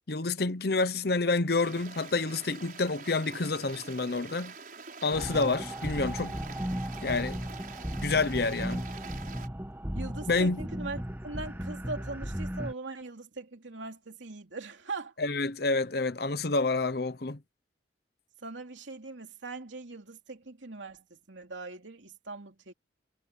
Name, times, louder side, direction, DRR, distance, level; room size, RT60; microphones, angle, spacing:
voice 1, 0.1-4.5 5.0-6.4 7.0-7.4 8.0-8.9 10.3-10.6 15.2-17.4, left 3 dB, 55° left, 0.9 m, -28 dB
Stream, 1.5-9.5, right 5 dB, 50° right, 6.7 m, -46 dB
sound 1, 5.1-12.7, equal, 10° right, 1.2 m, -36 dB
voice 2, 9.9-15.1 18.4-22.7, right 3 dB, 85° right, 2.9 m, -41 dB
head